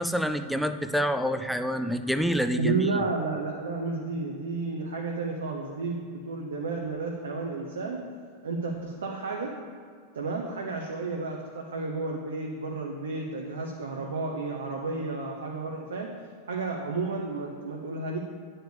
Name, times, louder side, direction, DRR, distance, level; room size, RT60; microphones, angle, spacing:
voice 1, 0.0-3.0, equal, ahead, 9 dB, 0.4 m, -27 dB
voice 2, 2.6-8.0 8.4-9.5 10.1-16.1 16.5-18.2, right 3 dB, 65° right, 0 dB, 0.8 m, -32 dB
9.2 x 4.4 x 6.7 m, 2.1 s
figure-of-eight pair, 90°, 0 cm